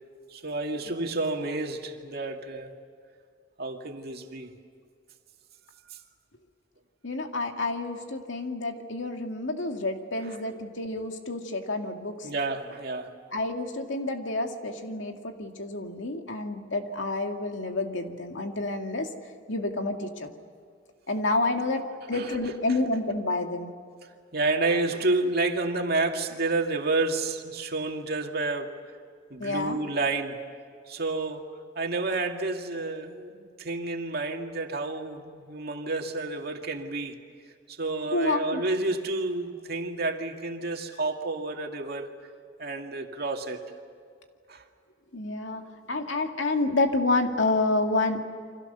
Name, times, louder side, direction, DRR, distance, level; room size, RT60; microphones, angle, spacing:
voice 1, 0.3-2.7 3.6-4.5 12.2-13.1 22.1-22.4 24.3-28.8 29.3-30.4 30.9-31.5 31.8-37.2 37.7-42.2 42.6-43.6 44.5-44.6, right 3 dB, 55° right, 3 dB, 2.3 m, -30 dB
voice 2, 7.0-12.3 13.3-19.1 19.5-20.3 21.1-23.7 29.4-29.8 38.1-38.6 45.1-48.2, left 2 dB, 80° left, 4 dB, 2.4 m, -29 dB
29.0 x 25.0 x 6.9 m, 2.1 s
head